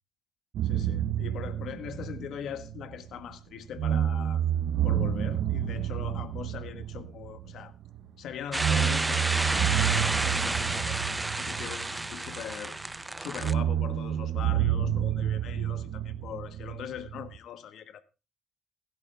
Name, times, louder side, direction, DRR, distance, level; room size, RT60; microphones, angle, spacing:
sound 1, 0.5-3.3 3.8-8.0 8.5-12.7 13.4-17.4, right 10 dB, 75° right, 0.8 m, -29 dB
voice 1, 0.6-4.4 4.8-7.7 8.2-9.7 10.1-11.0 11.4-12.8 13.2-18.0, left 9 dB, 75° left, 1.3 m, -41 dB
sound 2, 8.5-13.5, right 2 dB, 15° right, 0.6 m, -31 dB
16.0 x 11.5 x 3.4 m
cardioid pair, 90°, 0 cm